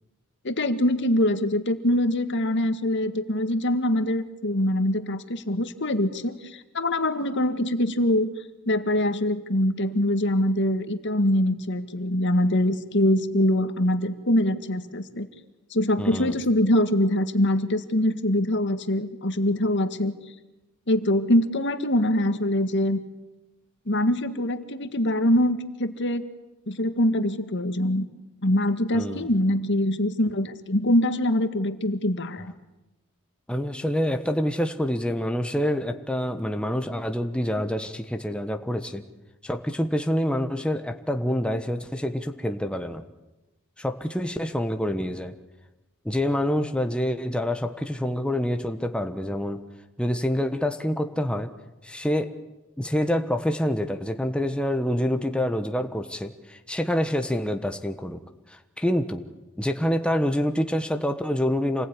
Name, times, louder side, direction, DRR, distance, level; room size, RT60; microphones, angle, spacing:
voice 1, 0.4-8.3 8.7-15.3 15.7-20.2 20.9-23.0 23.9-26.2 26.7-28.1 28.4-32.5, left 1 dB, 55° left, 9 dB, 1.8 m, -23 dB
voice 2, 16.0-16.4 28.9-29.3 33.5-39.0 39.4-43.0 43.8-45.3 46.0-49.6 50.0-51.5 51.8-52.3 52.8-58.2 58.5-59.2 59.6-61.9, equal, 5° left, 6 dB, 1.2 m, -27 dB
27.5 x 20.5 x 9.9 m, 1.0 s
head